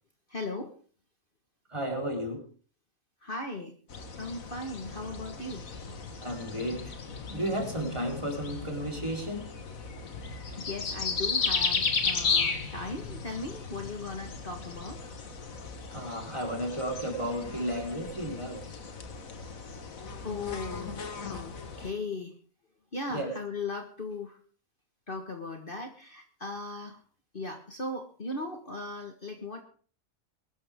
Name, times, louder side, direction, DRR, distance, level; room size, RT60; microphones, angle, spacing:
voice 1, 0.3-0.7 3.2-3.7 4.2-5.7 10.6-15.0 20.2-21.5 21.8-22.3 22.9-24.4 25.1-27.0 27.3-29.6, left 2 dB, 40° left, 4 dB, 1.7 m, -37 dB
voice 2, 1.7-2.4 6.2-6.8 7.3-9.5 15.9-18.6 23.1-23.3, equal, 20° right, 0 dB, 4.2 m, -33 dB
sound 1, 3.9-21.9, left 5 dB, 70° left, 2.0 m, -35 dB
22.0 x 12.5 x 3.6 m, 0.42 s
omnidirectional pair, 1.5 m